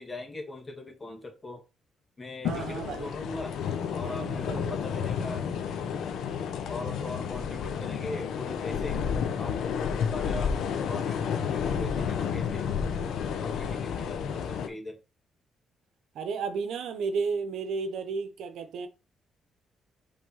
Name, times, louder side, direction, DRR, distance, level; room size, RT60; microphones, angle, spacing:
voice 1, 0.0-1.6 2.2-3.6 3.9-5.5 6.7-9.0 9.4-9.8 10.1-10.6 10.9-12.7 13.4-15.0, left 2 dB, 25° left, 2.0 m, -40 dB
sound 1, 2.4-14.7, left 7 dB, 75° left, 1.0 m, -31 dB
voice 2, 2.4-3.1 4.0-4.7 16.1-18.9, right 5 dB, 75° right, 1.0 m, -33 dB
5.2 x 3.8 x 5.6 m
cardioid pair, 90°, 0 cm